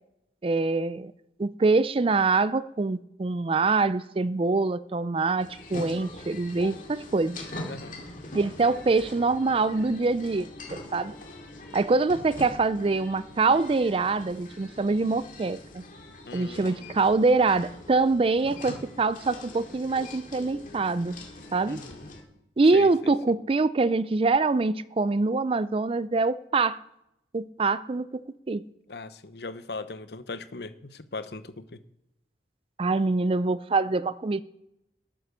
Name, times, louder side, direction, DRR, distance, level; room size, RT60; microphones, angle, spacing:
voice 1, 0.4-1.1 1.4-7.4 8.3-11.1 11.7-15.8 16.3-21.2 21.5-21.8 22.6-26.8 27.3-28.6 32.8-34.4, right 3 dB, 30° right, 0.4 m, -24 dB
sound 1, 5.4-22.2, left 2 dB, 50° left, 2.2 m, -43 dB
voice 2, 16.2-17.0 21.6-22.1 22.7-23.1 28.9-31.8, left 3 dB, 65° left, 0.8 m, -39 dB
12.0 x 8.5 x 6.8 m
head